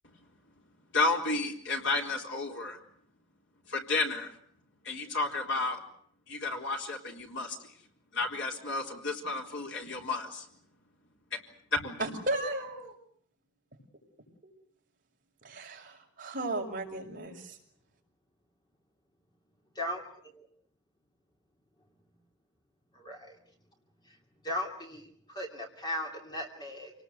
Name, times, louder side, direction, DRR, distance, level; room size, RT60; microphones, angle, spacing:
voice 1, 0.9-2.8 3.7-4.3 4.8-5.8 6.3-7.6 8.1-10.2 11.7-12.0, left 3 dB, 55° left, 1 dB, 4.0 m, -31 dB
voice 2, 12.0-12.9 14.4-14.5 15.4-17.6, right 2 dB, 40° right, 0 dB, 5.9 m, -35 dB
voice 3, 19.7-20.5 22.9-23.4 24.1-24.2 24.4-26.9, left 1 dB, 20° left, 1 dB, 2.9 m, -37 dB
28.0 x 19.5 x 8.1 m, 0.64 s
head